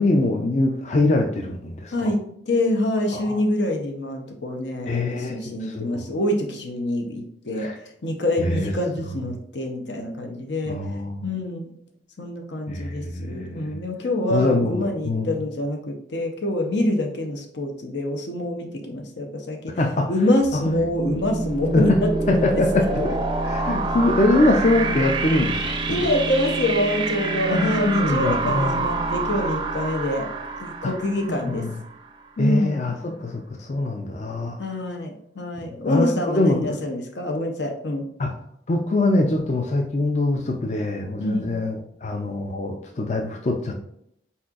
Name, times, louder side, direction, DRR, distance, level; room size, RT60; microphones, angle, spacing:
voice 1, 0.0-2.1 3.1-3.4 4.9-6.0 7.6-7.7 8.4-8.7 10.7-11.3 12.7-13.8 14.3-15.4 19.8-20.1 21.7-21.8 22.3-23.0 23.4-25.6 25.9-26.0 27.5-28.8 30.8-30.9 31.3-31.7 32.4-34.6 35.8-36.1 36.3-36.8 38.2-38.3 38.7-43.7, left 2 dB, 40° left, 2 dB, 0.4 m, -23 dB
voice 2, 2.5-7.7 8.0-10.8 11.2-11.7 12.2-19.7 20.1-21.9 22.3-22.6 22.9-23.1 25.9-30.3 30.6-31.6 32.4-32.8 34.6-38.1 41.2-41.5, left 1 dB, 80° left, 3 dB, 0.8 m, -26 dB
sound 1, 20.4-32.1, right 3 dB, 25° right, 0.5 m, -27 dB
4.5 x 4.2 x 2.4 m, 0.71 s
head